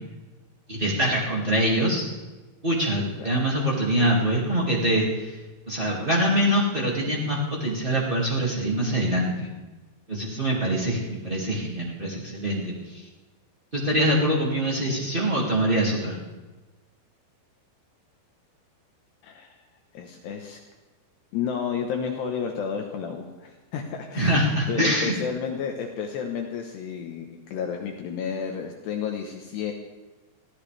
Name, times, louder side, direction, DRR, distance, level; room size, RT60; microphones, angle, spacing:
voice 1, 0.7-2.1 2.6-5.4 5.7-9.5 10.1-13.0 13.7-16.2 24.2-25.1, right 1 dB, 55° right, -5 dB, 0.5 m, -24 dB
voice 2, 19.2-19.5 19.9-20.6 21.3-29.7, left 7 dB, 70° left, 3 dB, 2.8 m, -31 dB
23.5 x 15.5 x 3.4 m, 1.2 s
omnidirectional pair, 5.7 m